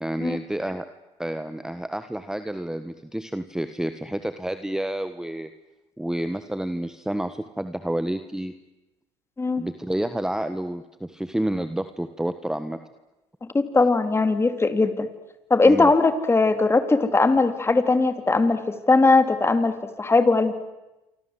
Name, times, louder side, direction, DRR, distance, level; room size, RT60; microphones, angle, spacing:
voice 1, 0.0-0.9 1.2-5.5 6.0-8.5 9.6-12.8 15.6-15.9, right 1 dB, 5° right, 10 dB, 1.4 m, -29 dB
voice 2, 13.5-15.1 15.5-18.6 18.9-20.5, left 3 dB, 15° left, 10 dB, 3.0 m, -19 dB
27.5 x 25.5 x 8.1 m, 1.0 s
supercardioid pair, 90°, 14 cm